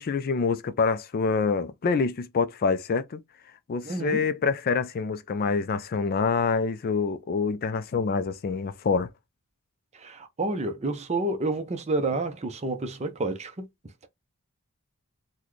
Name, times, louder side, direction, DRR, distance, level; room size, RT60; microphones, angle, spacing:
voice 1, 0.0-3.2 3.7-9.1, left 5 dB, 45° left, 0.4 m, -26 dB
voice 2, 3.8-4.3 9.9-13.5, right 2 dB, 30° right, 0.6 m, -29 dB
4.0 x 2.2 x 3.1 m
head